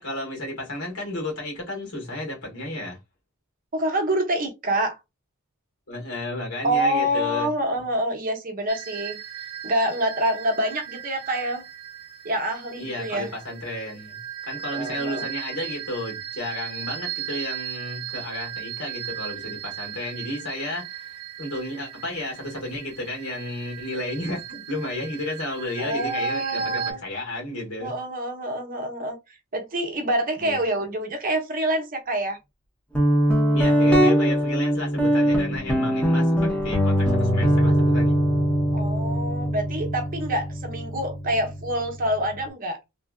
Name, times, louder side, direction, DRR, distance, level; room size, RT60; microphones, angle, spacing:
voice 1, 0.0-3.0 5.9-7.5 12.8-27.9 30.4-31.0 33.5-38.2, left 1 dB, 75° left, 1.6 m, -33 dB
voice 2, 3.7-5.0 6.6-9.2 9.6-11.6 12.2-13.3 14.7-15.2 25.8-27.0 27.8-29.2 29.5-32.4 38.7-42.8, right 1 dB, 40° right, 0.7 m, -26 dB
sound 1, 8.7-26.9, right 11 dB, 75° right, 0.7 m, -37 dB
Guitar, 32.9-42.4, equal, 5° left, 0.7 m, -22 dB
3.2 x 2.4 x 2.2 m
head